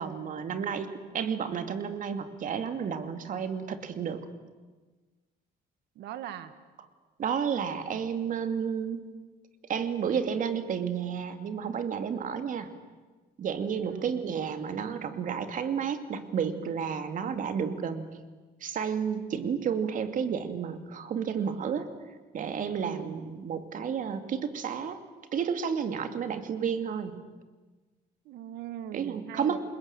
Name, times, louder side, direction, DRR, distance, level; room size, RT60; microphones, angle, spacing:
voice 1, 0.0-4.3 7.2-9.1 9.7-12.7 13.4-18.1 18.6-21.9 22.3-25.0 25.3-27.2 28.9-29.6, right 7 dB, 50° right, 8 dB, 2.6 m, -31 dB
voice 2, 6.0-6.5 13.8-14.1 22.8-23.1 28.3-29.6, right 11 dB, 80° right, 11 dB, 2.0 m, -40 dB
28.0 x 20.5 x 9.0 m, 1.3 s
cardioid pair, 110°, 17 cm